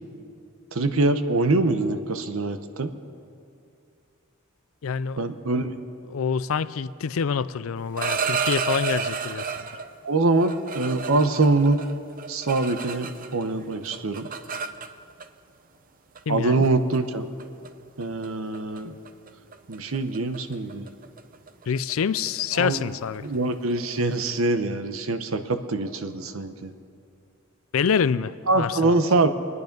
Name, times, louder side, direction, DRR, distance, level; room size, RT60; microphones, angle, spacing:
voice 1, 0.7-2.9 5.2-5.7 10.0-11.8 12.3-14.3 16.3-17.3 18.0-18.9 19.7-20.9 22.5-22.8 23.2-26.7 28.5-29.3, right 2 dB, 80° right, 9 dB, 0.9 m, -24 dB
voice 2, 4.8-5.2 6.1-9.7 16.3-16.7 21.7-23.3 27.7-29.0, left 6 dB, 80° left, 16 dB, 0.4 m, -26 dB
sound 1, 7.8-9.9 10.4-13.5 13.7-15.3 16.2-16.3 16.6-17.0 17.4-17.7 18.0-18.3 18.5-18.8 19.1-24.4, right 6 dB, 40° right, 0.6 m, -32 dB
25.0 x 9.7 x 5.3 m, 2.5 s
head